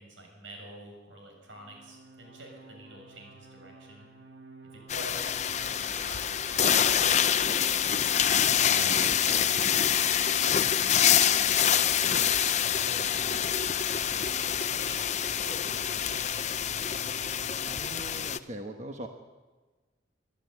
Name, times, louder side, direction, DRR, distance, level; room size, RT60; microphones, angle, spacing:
voice 1, 0.0-4.1 4.6-8.0 8.8-16.6, right 1 dB, 85° right, 1 dB, 7.3 m, -48 dB
sound 1, 1.4-17.7, right 3 dB, 60° right, 1.8 m, -51 dB
sound 2, 4.9-18.4, left 9 dB, 35° left, 0.5 m, -26 dB
voice 2, 8.6-9.5 17.6-19.1, right 1 dB, 35° right, 3 dB, 1.2 m, -41 dB
24.5 x 12.0 x 9.6 m, 1.3 s
head